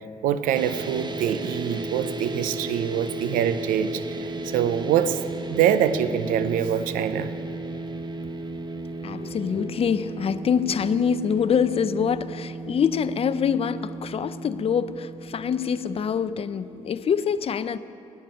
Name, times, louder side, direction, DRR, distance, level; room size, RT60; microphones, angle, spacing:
voice 1, 0.2-5.2 5.5-7.3, right 9 dB, 85° right, 13 dB, 0.5 m, -24 dB
sound 1, 0.5-16.9, right 2 dB, 35° right, 0.9 m, -35 dB
voice 2, 9.0-17.8, left 7 dB, 45° left, 14 dB, 0.5 m, -25 dB
10.5 x 9.2 x 8.7 m, 2.6 s
supercardioid pair, 65°, 14 cm